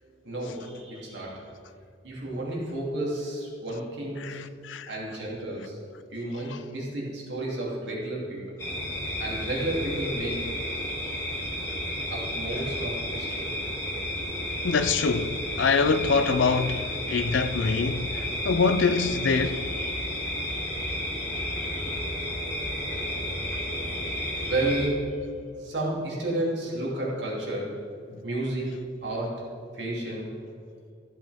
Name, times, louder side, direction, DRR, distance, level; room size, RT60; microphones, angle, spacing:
voice 1, 0.0-1.6 2.0-4.5 4.9-5.8 6.1-8.5 9.2-10.6 12.1-13.4 19.4-20.2 21.4-21.8 22.9-23.8 24.4-27.9 28.2-30.4, right 1 dB, 65° right, 2.8 m, -32 dB
voice 2, 4.2-4.9 14.6-19.7, left 4 dB, 80° left, 0.5 m, -25 dB
sound 1, 8.6-24.9, left 1 dB, 15° left, 2.1 m, -32 dB
14.5 x 7.5 x 3.5 m
head